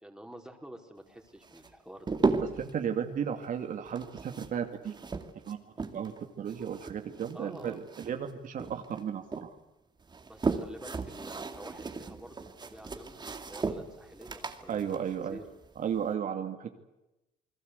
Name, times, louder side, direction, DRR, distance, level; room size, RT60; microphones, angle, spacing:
voice 1, 0.0-2.2 7.3-7.8 10.2-15.5, right 1 dB, 5° right, 3 dB, 4.6 m, -48 dB
sound 1, 1.4-2.7 3.9-6.2 6.5-8.3 8.6-9.5 10.0-16.1, right 4 dB, 25° right, 2.5 m, -35 dB
voice 2, 2.4-4.9 5.4-5.6 5.9-9.5 14.7-15.4 15.8-16.7, right 8 dB, 50° right, 5 dB, 2.4 m, -34 dB
29.0 x 21.0 x 8.3 m, 0.95 s
cardioid pair, 110°, 17 cm